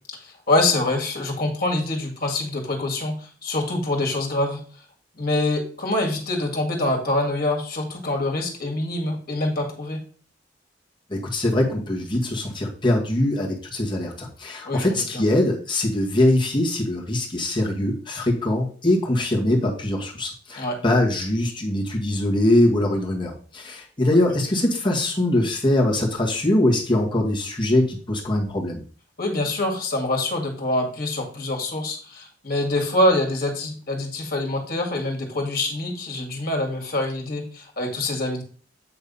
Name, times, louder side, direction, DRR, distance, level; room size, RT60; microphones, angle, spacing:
voice 1, 0.2-4.6 5.2-10.0 14.6-15.2 20.6-20.8 29.2-38.4, left 1 dB, 55° left, 1 dB, 2.0 m, -25 dB
voice 2, 11.1-28.8, left 1 dB, 25° left, -2 dB, 1.8 m, -22 dB
8.4 x 3.5 x 5.4 m, 0.44 s
head